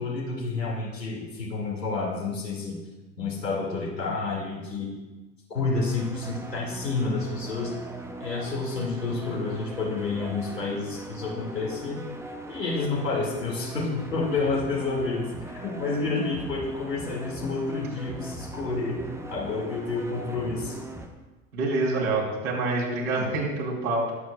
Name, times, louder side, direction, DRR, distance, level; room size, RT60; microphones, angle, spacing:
voice 1, 0.0-2.8 3.2-4.9 5.5-7.7 8.2-12.1 12.5-19.0 19.3-20.8, left 3 dB, 85° left, -2 dB, 2.4 m, -29 dB
sound 1, 5.7-21.1, right 2 dB, 5° right, 0.8 m, -40 dB
voice 2, 21.5-24.1, right 2 dB, 60° right, -2 dB, 3.6 m, -26 dB
20.5 x 8.1 x 2.4 m, 1.2 s
figure-of-eight pair, 85°, 48 cm